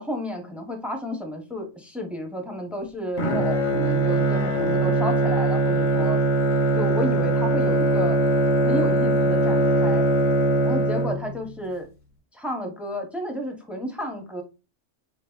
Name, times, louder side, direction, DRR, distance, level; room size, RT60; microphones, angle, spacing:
voice 1, 0.0-6.2 6.7-8.2 8.6-10.1 10.6-11.9 12.3-14.4, equal, ahead, 3 dB, 0.5 m, -31 dB
Bowed string instrument, 3.2-11.5, right 1 dB, 45° left, 0.7 m, -21 dB
4.0 x 3.7 x 2.3 m, 0.30 s
omnidirectional pair, 1.3 m